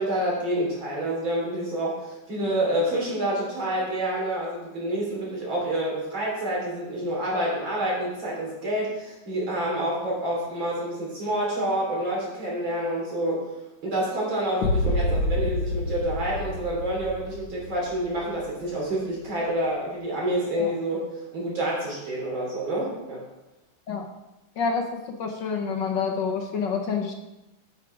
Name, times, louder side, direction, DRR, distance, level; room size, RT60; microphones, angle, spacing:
voice 1, 0.0-13.5 13.8-23.2, right 1 dB, 65° right, -4 dB, 3.7 m, -28 dB
sound 1, 14.6-18.6, left 1 dB, 80° left, 1.9 m, -28 dB
voice 2, 24.6-27.1, left 5 dB, 65° left, 3 dB, 1.4 m, -28 dB
9.7 x 5.7 x 4.8 m, 0.97 s
omnidirectional pair, 2.4 m